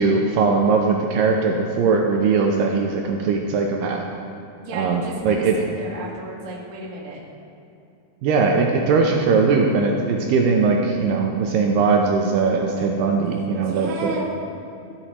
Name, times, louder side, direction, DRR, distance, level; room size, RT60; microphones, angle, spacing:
voice 1, 0.0-4.1 4.7-5.6 8.2-14.2, right 4 dB, 75° right, 1 dB, 2.1 m, -20 dB
voice 2, 4.6-7.2 13.6-14.2, right 2 dB, 50° right, -4 dB, 1.1 m, -33 dB
14.0 x 8.5 x 3.0 m, 2.8 s
omnidirectional pair, 4.4 m